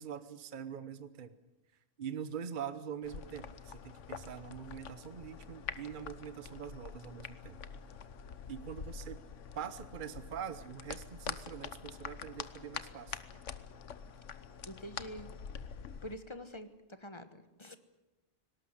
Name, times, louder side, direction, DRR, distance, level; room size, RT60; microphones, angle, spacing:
voice 1, 0.0-1.3 2.0-7.6 8.5-9.2 9.5-13.2, right 8 dB, 45° right, 13 dB, 1.0 m, -43 dB
sound 1, 3.0-16.2, left 7 dB, 80° left, 1.3 m, -46 dB
voice 2, 14.7-15.3 16.0-16.7 17.0-17.8, equal, 25° left, 10 dB, 1.2 m, -46 dB
19.0 x 18.0 x 9.9 m, 1.1 s
omnidirectional pair, 1.2 m